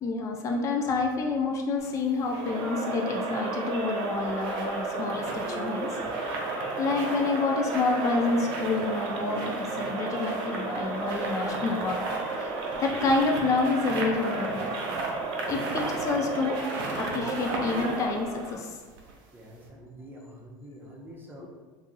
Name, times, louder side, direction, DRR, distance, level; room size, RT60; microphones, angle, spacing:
voice 1, 0.0-5.9 6.8-14.7 15.5-16.6 17.0-18.8, left 3 dB, 30° left, 2 dB, 0.4 m, -28 dB
sound 1, 1.8-2.5 3.8-19.3 19.6-19.7, right 2 dB, 80° right, 0.7 m, -39 dB
Crowd, 2.2-18.5, right 3 dB, 50° right, 0.8 m, -33 dB
voice 2, 19.3-21.5, equal, 20° right, -2 dB, 0.7 m, -46 dB
2.6 x 2.4 x 3.9 m, 1.3 s
supercardioid pair, 105°, 11 cm